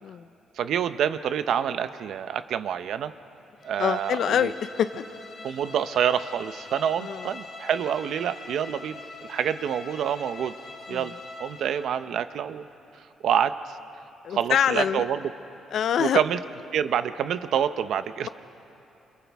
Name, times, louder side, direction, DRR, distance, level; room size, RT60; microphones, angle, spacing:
voice 1, 0.6-3.1 3.6-4.5 5.4-9.0 9.3-10.5 10.9-11.1 11.4-12.6 13.2-13.8 14.3-15.3 16.0-16.4 16.7-18.3, right 9 dB, 70° right, 12 dB, 0.7 m, -27 dB
Bowed string instrument, 3.6-12.0, left 3 dB, 45° left, 1.7 m, -43 dB
voice 2, 3.8-4.9 7.0-7.3 10.9-11.1 14.2-15.0 15.7-16.2, left 9 dB, 60° left, 13 dB, 0.6 m, -25 dB
28.5 x 28.5 x 3.5 m, 2.9 s
cardioid pair, 145°, 0 cm